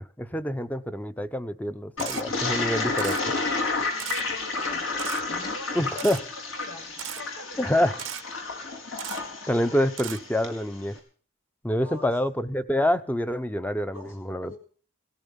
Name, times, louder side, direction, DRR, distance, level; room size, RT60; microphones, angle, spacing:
voice 1, 0.2-3.2 5.8-6.2 7.6-8.0 9.5-11.0 11.6-14.5, left 1 dB, 10° left, 12 dB, 0.8 m, -26 dB
Toilet flush, 2.0-10.6, left 3 dB, 70° left, 4.6 m, -31 dB
Camera, 2.0-2.2 3.0-3.2 4.0-4.2 5.0-5.2 6.0-6.2 7.0-7.2 8.0-8.2 9.0-9.2 10.0-10.2, right 12 dB, 65° right, 0.8 m, -35 dB
voice 2, 3.7-5.0 5.2-6.3 6.5-8.0 11.8-12.1 13.9-14.6, left 2 dB, 85° left, 4 dB, 7.1 m, -45 dB
17.5 x 14.5 x 5.4 m, 0.43 s
head